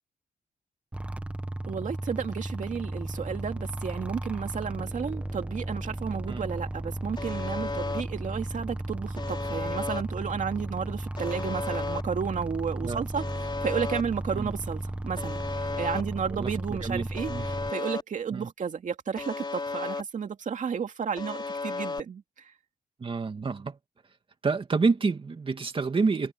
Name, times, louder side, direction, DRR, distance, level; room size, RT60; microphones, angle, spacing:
sound 1, 0.9-17.7, right 1 dB, 10° right, 1.4 m, -35 dB
voice 1, 1.7-22.2, right 7 dB, 55° right, 2.5 m, -32 dB
Alarm, 7.2-8.0 9.2-10.0 11.2-12.0 13.2-14.0 15.2-16.0 17.2-18.0 19.2-20.0 21.2-22.0, left 3 dB, 30° left, 4.2 m, -34 dB
voice 2, 16.8-17.4 18.3-18.5 23.0-23.8 24.4-26.3, right 4 dB, 35° right, 2.3 m, -28 dB
wide cardioid pair, 140°, 16 cm